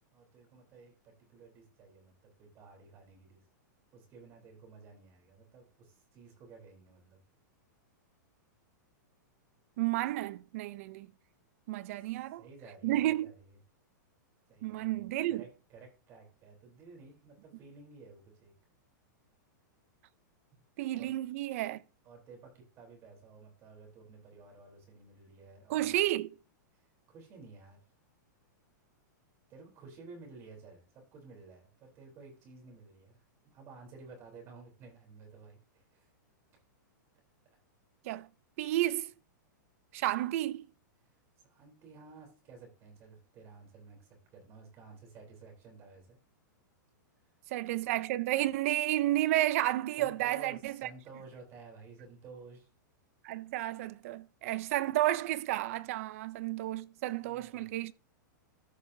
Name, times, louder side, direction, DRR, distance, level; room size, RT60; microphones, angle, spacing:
voice 1, 0.1-3.4 3.9-7.2 12.4-13.6 14.5-15.0 15.3-18.5 20.5-20.6 21.0-21.1 22.0-25.9 26.7-27.8 29.5-36.1 37.4-37.6 41.4-46.2 50.0-52.7 57.1-57.7, right 4 dB, 25° right, 3.4 m, -53 dB
voice 2, 9.8-11.1 11.7-12.4 12.8-13.3 14.6-15.4 20.8-21.8 25.7-26.3 38.0-38.3 38.6-39.1 39.9-40.7 47.5-50.9 53.2-57.9, right 15 dB, 45° right, 0.5 m, -31 dB
13.0 x 5.6 x 2.6 m
supercardioid pair, 165°, 10 cm